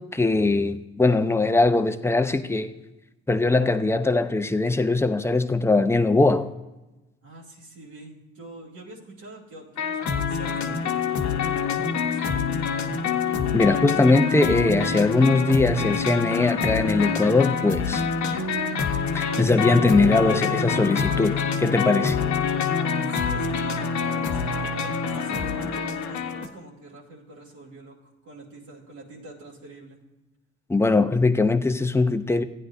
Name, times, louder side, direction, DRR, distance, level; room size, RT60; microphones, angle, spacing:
voice 1, 0.0-2.7 3.3-6.5 13.5-18.0 19.1-22.2 30.7-32.4, left 3 dB, 10° left, 0.7 m, -21 dB
voice 2, 7.2-12.6 23.1-23.8 24.3-30.0, right 2 dB, 65° right, 2.6 m, -45 dB
sound 1, 9.8-26.5, left 6 dB, 60° left, 1.1 m, -26 dB
15.5 x 9.8 x 2.6 m
supercardioid pair, 60°, 31 cm